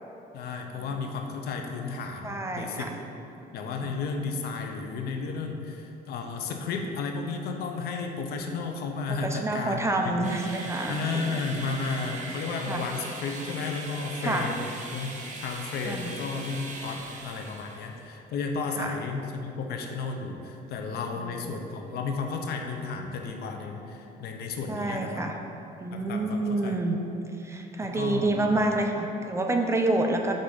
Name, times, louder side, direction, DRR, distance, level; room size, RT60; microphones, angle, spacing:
voice 1, 0.3-2.9 3.5-10.3 10.9-15.1 15.4-25.2 25.9-26.8 27.9-28.4, left 4 dB, 70° left, 3 dB, 0.7 m, -33 dB
voice 2, 2.2-2.9 3.8-4.0 9.1-11.5 12.2-12.4 12.7-12.8 14.2-14.5 15.8-16.1 18.8-19.0 21.2-21.7 24.7-25.4 25.8-27.0 27.4-30.3, right 2 dB, 15° right, 2 dB, 0.5 m, -28 dB
sound 1, 10.2-18.0, right 2 dB, 45° right, 1.0 m, -40 dB
5.1 x 3.9 x 5.6 m, 2.8 s
cardioid pair, 110°, 17 cm